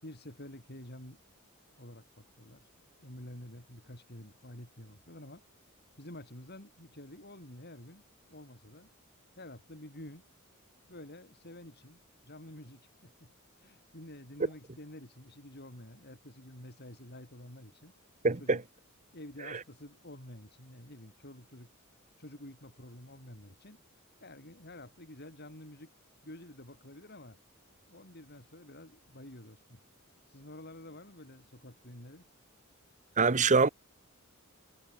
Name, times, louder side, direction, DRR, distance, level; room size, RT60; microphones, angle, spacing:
voice 1, 0.0-1.2 1.8-2.7 3.0-5.4 6.0-8.0 8.3-8.9 9.4-10.2 10.9-13.3 13.6-17.9 18.4-18.6 19.1-21.7 22.2-23.8 24.2-25.9 26.2-27.4 27.9-29.8 30.3-32.2, left 1 dB, 50° left, 8.0 m, -49 dB
voice 2, 18.2-18.6 19.5-19.6 33.2-33.7, right 4 dB, 35° right, 1.1 m, -24 dB
head